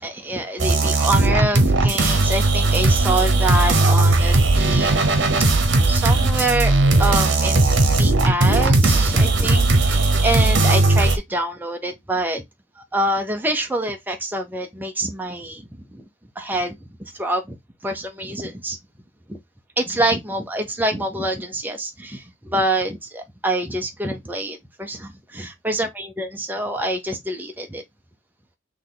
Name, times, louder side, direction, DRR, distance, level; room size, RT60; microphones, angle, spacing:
voice 1, 0.0-5.0 5.9-12.4 12.8-15.6 15.9-16.0 16.4-16.8 17.1-17.6 17.8-18.8 19.3-19.4 19.8-27.8, right 1 dB, 10° right, 0.7 m, -26 dB
sound 1, 0.6-11.2, right 2 dB, 60° right, 1.0 m, -17 dB
4.1 x 3.2 x 3.9 m
head